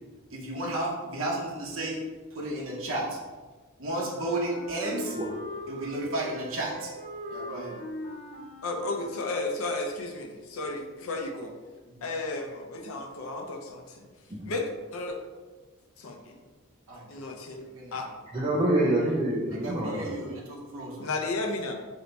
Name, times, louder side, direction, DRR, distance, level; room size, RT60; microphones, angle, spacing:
voice 1, 0.3-2.0 2.3-3.2 3.8-5.2 5.7-6.9 7.3-7.8 11.3-11.4 11.9-12.1 16.9-17.1 17.6-18.1 19.6-21.1, right 1 dB, 65° right, -4 dB, 0.8 m, -33 dB
Wind instrument woodwind instrument, 3.9-9.7, left 1 dB, 45° left, 1.2 m, -41 dB
voice 2, 8.6-11.5 12.0-14.1 14.5-15.2 16.0-16.3 17.1-17.6 17.9-18.1 20.2-20.3 21.0-21.7, left 2 dB, 80° left, 2 dB, 0.6 m, -33 dB
voice 3, 18.3-20.1, right 1 dB, 25° right, -7 dB, 0.5 m, -26 dB
3.3 x 2.7 x 4.0 m, 1.3 s
head